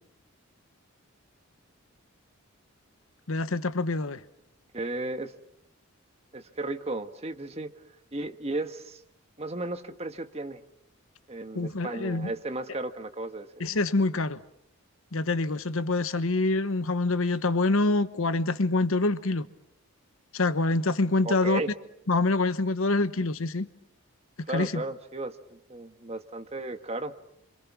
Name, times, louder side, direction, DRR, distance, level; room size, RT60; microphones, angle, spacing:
voice 1, 3.3-4.2 11.5-12.3 13.6-14.4 15.1-19.5 20.3-21.6 22.1-23.7 24.5-24.8, left 2 dB, 65° left, 1.0 m, -26 dB
voice 2, 4.7-5.3 6.3-7.7 8.1-9.0 9.4-10.6 11.3-13.5 21.2-21.7 24.5-27.1, right 2 dB, 30° right, 1.4 m, -34 dB
28.5 x 26.0 x 6.0 m
head